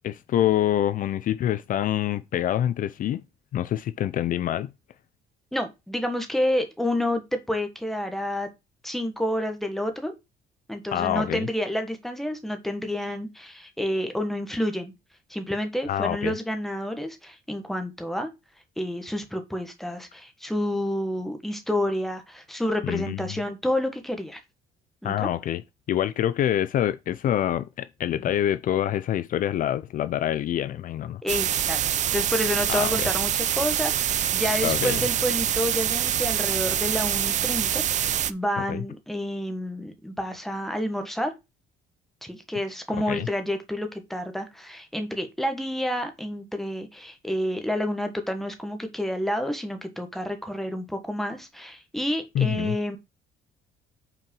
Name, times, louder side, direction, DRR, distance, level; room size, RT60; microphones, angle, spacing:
voice 1, 0.0-3.2 3.5-4.7 10.9-11.5 15.9-16.3 22.8-23.3 25.0-25.6 25.9-31.2 32.7-33.1 34.6-35.0 38.7-38.8 43.1-43.3 52.3-52.8, left 11 dB, 55° left, 0.5 m, -26 dB
voice 2, 5.5-8.5 8.8-10.1 10.7-14.9 15.3-18.3 18.8-24.4 25.0-25.3 31.2-31.8 32.1-41.3 42.2-53.0, left 1 dB, ahead, 1.3 m, -29 dB
sound 1, 31.3-38.3, right 10 dB, 45° right, 0.5 m, -25 dB
5.8 x 4.7 x 5.3 m
cardioid pair, 110°, 17 cm